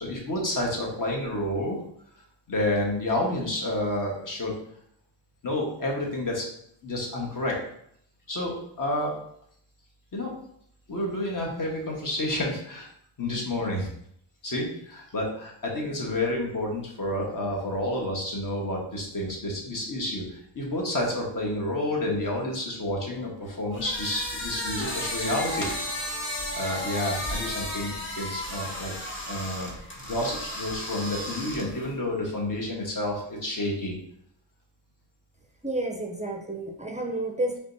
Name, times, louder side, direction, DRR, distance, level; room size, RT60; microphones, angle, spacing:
voice 1, 0.0-1.8 2.5-4.5 5.4-6.4 6.8-7.6 8.3-9.1 10.1-10.3 10.9-12.9 13.2-13.9 14.4-26.0 26.5-28.9 29.3-29.7 30.0-33.9, left 1 dB, 40° left, -1 dB, 1.4 m, -29 dB
sound 1, 23.7-31.9, left 1 dB, 25° left, 1.3 m, -34 dB
voice 2, 35.6-37.6, right 2 dB, 15° right, 1 dB, 0.5 m, -30 dB
5.0 x 3.5 x 2.7 m, 0.71 s
cardioid pair, 80°, 50 cm